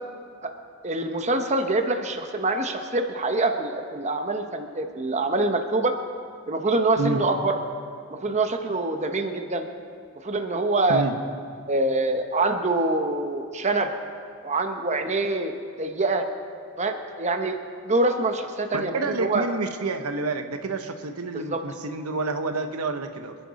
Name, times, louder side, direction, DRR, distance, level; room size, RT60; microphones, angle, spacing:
voice 1, 0.8-5.9 6.5-7.6 8.1-9.7 10.2-11.0 11.7-13.9 14.4-15.5 15.8-16.2 16.8-17.6 17.8-19.4 21.5-21.6, right 2 dB, 30° right, 5 dB, 0.8 m, -25 dB
voice 2, 18.7-23.4, right 3 dB, 80° right, 7 dB, 1.0 m, -29 dB
26.5 x 10.0 x 4.1 m, 2.2 s
head